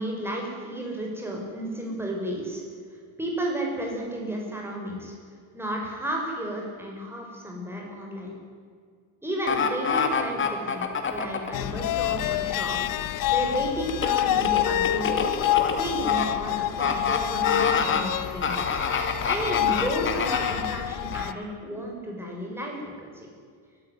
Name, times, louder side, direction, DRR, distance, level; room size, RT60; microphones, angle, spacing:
voice 1, 0.0-2.6 3.2-5.1 5.5-8.3 9.2-12.8 13.0-15.3 15.8-18.8 19.2-23.3, equal, 5° right, -1 dB, 6.3 m, -32 dB
sound 1, 9.5-11.5 13.9-16.2 16.8-17.2 17.4-18.0 18.4-20.6 21.1-21.2, left 6 dB, 30° left, 2.6 m, -26 dB
sound 2, 11.5-21.3, left 13 dB, 60° left, 1.0 m, -27 dB
24.0 x 14.5 x 9.8 m, 2.1 s
cardioid pair, 160°, 37 cm